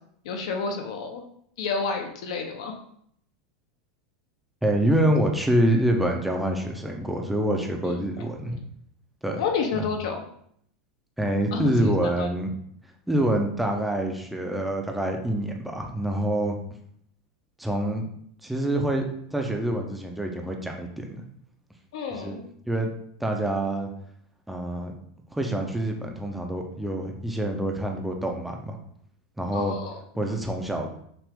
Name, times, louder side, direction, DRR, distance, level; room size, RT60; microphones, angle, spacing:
voice 1, 0.2-1.2 1.6-2.8 7.8-8.0 9.4-10.2 11.5-12.3 21.9-22.4 29.5-30.0, left 5 dB, 65° left, 4 dB, 0.8 m, -30 dB
voice 2, 4.6-8.6 9.2-9.4 9.7-9.9 11.2-12.5 13.1-16.6 17.6-18.0 18.4-20.9 22.1-22.4 22.7-22.9 23.2-23.9 24.5-24.9 25.3-28.8 29.4-29.7 30.2-30.9, right 1 dB, 5° right, 2 dB, 0.5 m, -26 dB
5.9 x 2.5 x 3.5 m, 0.67 s
supercardioid pair, 160°, 3 cm